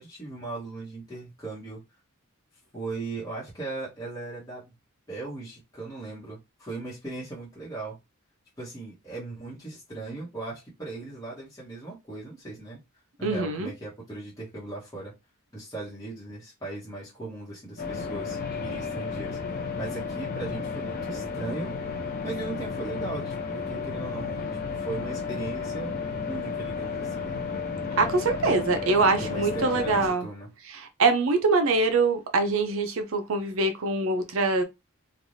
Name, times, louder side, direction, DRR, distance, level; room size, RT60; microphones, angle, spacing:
voice 1, 0.0-1.8 2.7-4.7 5.1-8.0 8.6-12.8 13.2-15.1 15.5-19.4 19.8-21.7 22.2-27.4 29.2-30.5, right 3 dB, 15° left, 1.1 m, -38 dB
voice 2, 13.2-13.7 28.0-30.3 30.7-34.6, right 3 dB, 65° right, 0.5 m, -24 dB
sound 1, 17.8-30.1, left 5 dB, 45° left, 0.7 m, -33 dB
3.2 x 2.3 x 2.6 m
head